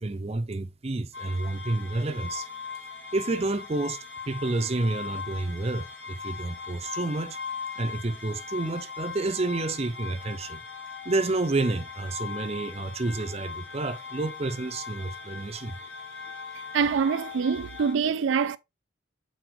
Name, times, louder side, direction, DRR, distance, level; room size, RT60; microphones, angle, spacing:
voice 1, 0.0-2.4 3.1-4.0 4.3-7.4 7.8-10.6 11.0-15.7, right 2 dB, 35° right, 0.6 m, -29 dB
sound 1, 1.1-17.9, left 5 dB, 75° left, 3.5 m, -39 dB
voice 2, 16.7-18.6, right 6 dB, 85° right, 0.4 m, -25 dB
7.7 x 4.4 x 3.1 m
head